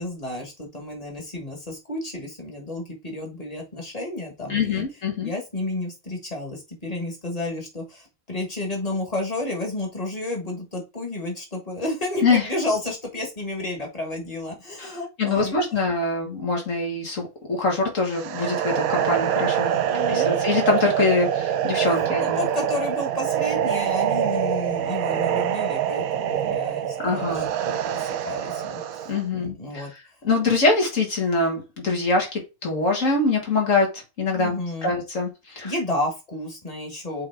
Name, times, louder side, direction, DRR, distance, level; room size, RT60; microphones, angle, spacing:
voice 1, 0.0-4.8 5.2-15.5 19.7-20.3 22.2-29.9 34.4-34.9 35.6-37.3, left 2 dB, 25° left, 1 dB, 1.7 m, -31 dB
voice 2, 4.5-5.3 12.2-12.5 14.8-19.8 20.1-22.5 27.0-27.5 29.1-29.9 30.2-34.6 34.8-35.7, left 3 dB, 65° left, 1 dB, 2.1 m, -24 dB
sound 1, 18.1-29.2, right 10 dB, 80° right, 1.1 m, -25 dB
7.7 x 3.6 x 3.5 m, 0.27 s
omnidirectional pair, 1.5 m